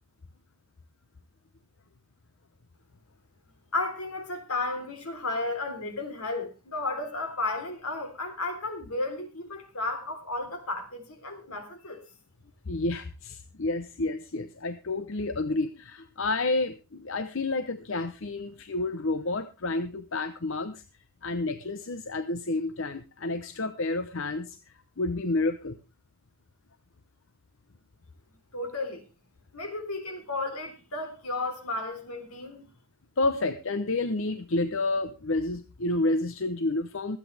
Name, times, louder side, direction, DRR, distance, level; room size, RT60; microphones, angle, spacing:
voice 1, 3.7-12.0 28.5-29.0 29.5-32.7, left 2 dB, 80° left, 3.6 m, -33 dB
voice 2, 12.7-20.8 21.2-24.6 25.0-25.8 33.2-37.2, left 2 dB, 60° left, 0.8 m, -30 dB
24.0 x 8.6 x 3.3 m
head